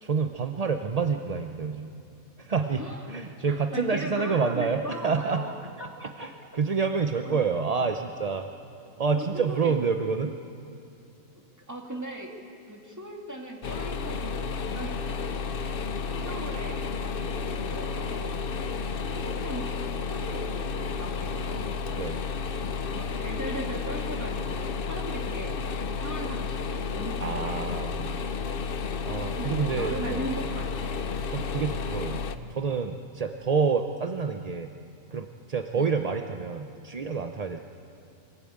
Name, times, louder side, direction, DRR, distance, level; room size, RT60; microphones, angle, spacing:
voice 1, 0.0-1.9 2.4-2.8 3.1-5.4 5.8-8.5 9.0-10.3 22.0-22.2 27.2-28.1 29.1-30.3 31.3-32.2 32.5-34.7 35.1-37.6, right 5 dB, 40° right, 5 dB, 0.6 m, -28 dB
voice 2, 2.8-3.1 3.5-5.5 5.8-5.9 6.2-6.3 7.2-7.5 9.1-9.7 11.3-11.4 11.7-12.3 12.7-15.2 16.1-18.7 19.0-19.7 20.1-21.7 22.9-25.6 25.9-27.6 29.4-30.9 35.7-36.0, right 1 dB, 10° right, 0 dB, 2.4 m, -38 dB
sound 1, 13.6-32.4, left 5 dB, 50° left, 0.8 m, -32 dB
24.5 x 16.5 x 8.8 m, 2.6 s
omnidirectional pair, 1.5 m